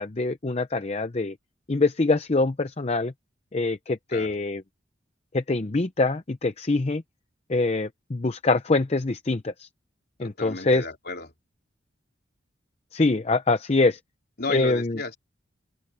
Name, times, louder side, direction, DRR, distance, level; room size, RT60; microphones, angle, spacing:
voice 1, 0.0-1.3 1.7-3.1 3.5-4.6 5.3-7.0 7.5-9.7 10.2-10.8 12.9-14.0 14.5-15.0, left 3 dB, 35° left, 0.6 m, -24 dB
voice 2, 10.2-11.3 14.4-15.2, left 3 dB, 55° left, 3.6 m, -32 dB
open air
head